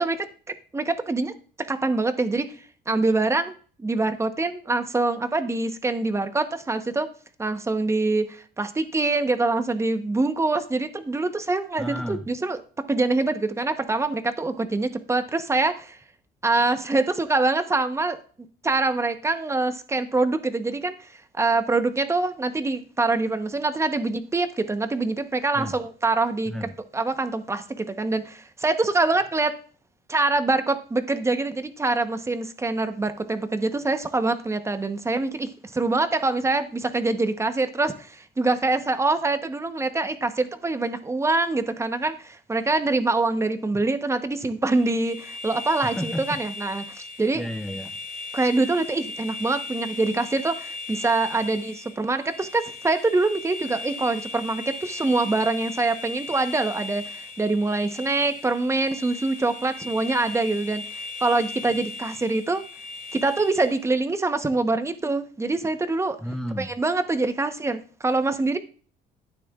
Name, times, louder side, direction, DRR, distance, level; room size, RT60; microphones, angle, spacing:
voice 1, 0.0-2.5 2.9-3.5 3.8-7.1 7.4-12.6 12.9-16.0 16.4-18.2 18.6-26.5 26.9-29.6 30.1-47.4 48.3-62.6 63.1-66.2 66.6-68.6, right 3 dB, 15° right, 10 dB, 0.9 m, -25 dB
voice 2, 11.8-12.3 25.5-25.8 26.5-26.7 43.7-43.8 45.8-46.4 47.3-48.0 66.2-66.7, equal, ahead, 7 dB, 0.5 m, -32 dB
sound 1, 44.7-63.9, left 3 dB, 45° left, 2.4 m, -38 dB
12.0 x 9.2 x 2.4 m, 0.41 s
cardioid pair, 110°, 17 cm